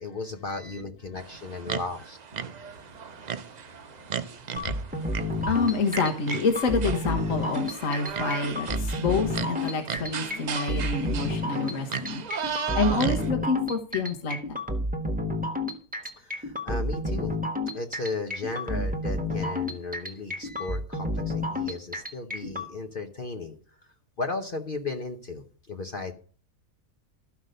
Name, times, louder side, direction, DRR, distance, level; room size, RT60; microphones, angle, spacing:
voice 1, 0.0-2.2 10.5-10.8 16.2-17.3 17.7-23.6 23.8-26.1, left 3 dB, 45° left, 1.0 m, -35 dB
sound 1, 1.2-13.3, right 7 dB, 50° right, 0.5 m, -36 dB
sound 2, 4.6-22.7, left 1 dB, 5° right, 1.3 m, -30 dB
voice 2, 5.4-12.2 12.7-14.6, left 4 dB, 70° left, 1.7 m, -27 dB
13.5 x 5.9 x 6.5 m
omnidirectional pair, 1.4 m